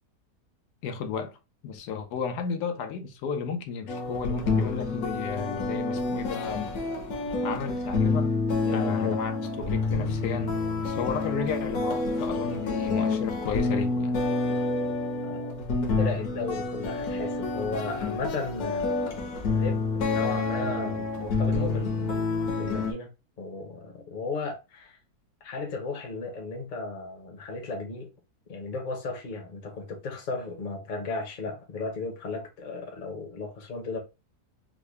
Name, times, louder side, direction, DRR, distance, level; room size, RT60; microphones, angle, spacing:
voice 1, 0.8-1.4 1.6-6.7 7.4-8.4 8.7-14.2, left 6 dB, 90° left, 1.2 m, -33 dB
sound 1, 3.9-22.9, left 3 dB, 70° left, 1.3 m, -28 dB
voice 2, 8.6-9.2 15.3-15.5 16.0-23.1 23.4-25.0 25.4-28.1 28.5-34.0, left 3 dB, 40° left, 0.7 m, -35 dB
3.7 x 2.2 x 3.1 m
omnidirectional pair, 1.7 m